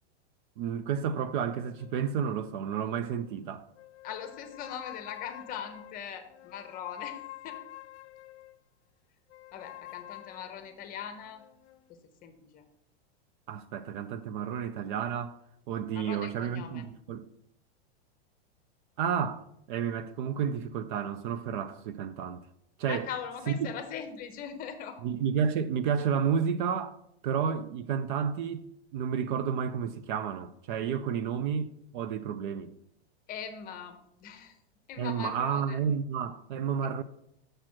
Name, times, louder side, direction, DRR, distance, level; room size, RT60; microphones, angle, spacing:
voice 1, 0.6-3.6 13.5-15.4 15.7-17.3 19.0-22.4 22.8-23.1 23.5-23.7 25.0-27.0 27.2-28.7 28.9-32.7 35.0-37.0, right 7 dB, 50° right, 0.4 m, -31 dB
sound 1, 1.3-3.4 3.7-8.6 9.3-11.9, left 16 dB, 80° left, 0.6 m, -48 dB
voice 2, 4.0-7.2 7.4-7.6 9.5-11.4 11.9-12.6 15.9-16.8 22.9-25.0 33.3-34.6 34.9-35.8, left 8 dB, 25° left, 0.8 m, -41 dB
6.4 x 6.1 x 4.4 m
supercardioid pair, 145°, 33 cm